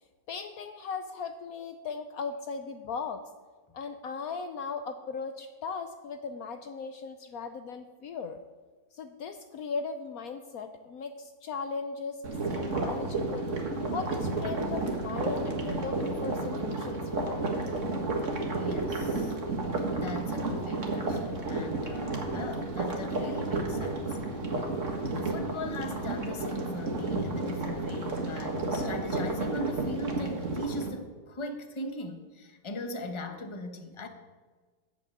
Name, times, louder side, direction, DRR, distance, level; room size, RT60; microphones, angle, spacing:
voice 1, 0.3-3.2 3.7-8.4 8.9-13.5 13.9-17.4, left 5 dB, 65° left, 8 dB, 1.1 m, -38 dB
sound 1, 12.2-30.9, right 2 dB, 50° right, 2.0 m, -32 dB
voice 2, 18.5-19.3 20.0-24.2 25.1-34.1, left 1 dB, 20° left, 5 dB, 1.0 m, -39 dB
13.5 x 6.1 x 8.6 m, 1.4 s
omnidirectional pair, 1.8 m